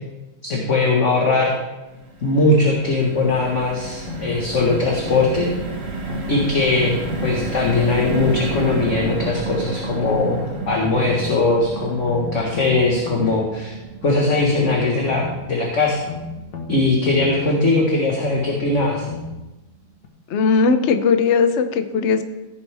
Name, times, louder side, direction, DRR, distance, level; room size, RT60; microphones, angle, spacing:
voice 1, 0.4-1.5 2.2-5.5 6.3-10.4 10.7-13.8 14.0-16.0 16.7-19.1, left 3 dB, 40° left, -2 dB, 1.6 m, -20 dB
sound 1, 1.9-18.2 18.6-18.7 19.0-19.2, right 3 dB, 40° right, 1.2 m, -32 dB
sound 2, 4.1-5.3 6.1-7.3 8.0-9.3 10.1-11.3 12.0-13.3 14.1-15.3 16.0-17.3 18.1-19.3 20.0-20.1, left 3 dB, 55° left, 1.8 m, -32 dB
voice 2, 20.3-22.2, left 5 dB, 75° left, 8 dB, 0.6 m, -18 dB
15.5 x 8.9 x 3.5 m, 1.0 s
omnidirectional pair, 2.2 m